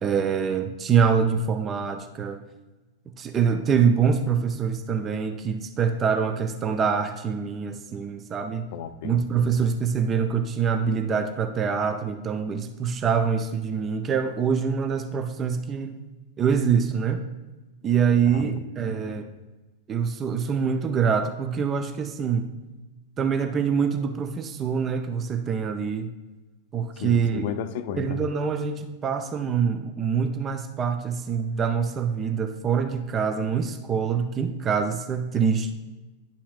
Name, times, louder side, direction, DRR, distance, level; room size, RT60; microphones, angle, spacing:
voice 1, 0.0-2.4 3.2-8.7 9.0-15.9 16.4-17.2 17.8-19.3 19.9-22.5 23.2-26.1 26.7-27.5 28.0-35.7, right 6 dB, 25° right, 8 dB, 0.5 m, -25 dB
voice 2, 8.7-9.1 18.3-19.2 27.0-28.3, left 9 dB, 50° left, 12 dB, 0.4 m, -34 dB
10.5 x 5.7 x 2.4 m, 1.1 s
figure-of-eight pair, 90°, 0 cm